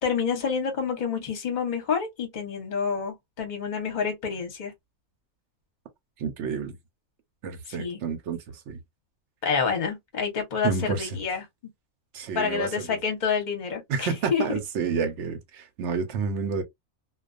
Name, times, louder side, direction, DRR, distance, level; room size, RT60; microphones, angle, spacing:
voice 1, 0.0-4.7 7.7-8.0 9.4-11.4 12.3-14.6, left 6 dB, 40° left, 0.8 m, -28 dB
voice 2, 6.2-6.8 7.4-8.8 10.6-11.1 12.1-13.0 13.9-16.6, right 5 dB, 65° right, 0.8 m, -29 dB
2.3 x 2.3 x 2.4 m
omnidirectional pair, 1.5 m